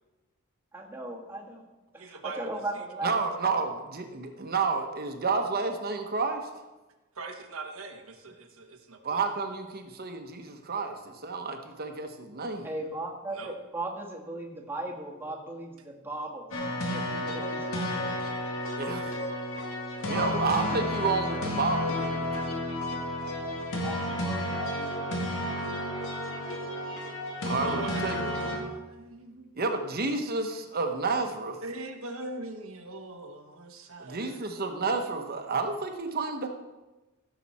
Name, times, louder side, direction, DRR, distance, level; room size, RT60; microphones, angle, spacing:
voice 1, 0.7-1.6 1.9-3.1 12.6-18.0 23.4-26.2, right 2 dB, 10° right, -2 dB, 1.5 m, -38 dB
voice 2, 2.0-2.5 7.1-9.2 13.3-13.5 18.9-19.2 20.1-20.3 27.6-29.6 31.6-34.3, right 2 dB, 85° right, 4 dB, 1.2 m, -41 dB
voice 3, 3.0-6.4 9.0-12.7 18.8-19.1 20.0-22.6 27.5-28.2 29.5-31.6 34.0-36.5, right 4 dB, 45° right, 5 dB, 1.1 m, -30 dB
sound 1, 16.5-28.6, left 1 dB, 75° left, 1.8 m, -32 dB
15.5 x 7.0 x 4.2 m, 1.1 s
head